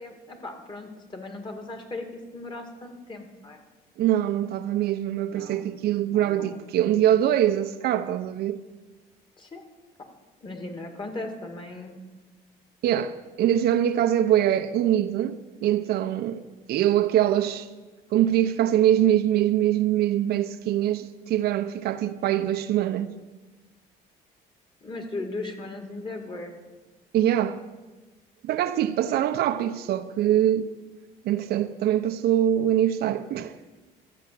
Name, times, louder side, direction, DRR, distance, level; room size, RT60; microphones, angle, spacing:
voice 1, 0.0-2.1 2.3-3.6 5.3-5.7 6.0-6.6 9.4-9.6 10.4-12.0 24.8-26.6, left 2 dB, 30° left, 2.2 m, -37 dB
voice 2, 4.0-8.6 12.8-16.4 16.7-17.7 18.1-23.1 27.1-27.6 28.4-30.7 31.2-33.6, right 11 dB, 70° right, 0.7 m, -23 dB
13.0 x 7.6 x 7.7 m
cardioid pair, 110°, 17 cm